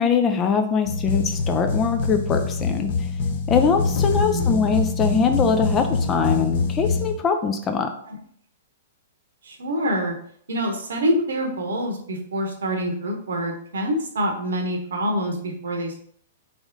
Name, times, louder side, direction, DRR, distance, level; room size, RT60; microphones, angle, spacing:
voice 1, 0.0-3.1 3.5-7.9, left 5 dB, 20° left, 6 dB, 0.4 m, -22 dB
sound 1, 0.9-7.1, left 4 dB, 50° left, 0.8 m, -24 dB
voice 2, 9.5-10.1 10.5-15.9, equal, 60° right, 2 dB, 1.0 m, -26 dB
3.5 x 3.4 x 3.9 m, 0.63 s
figure-of-eight pair, 110°, 0 cm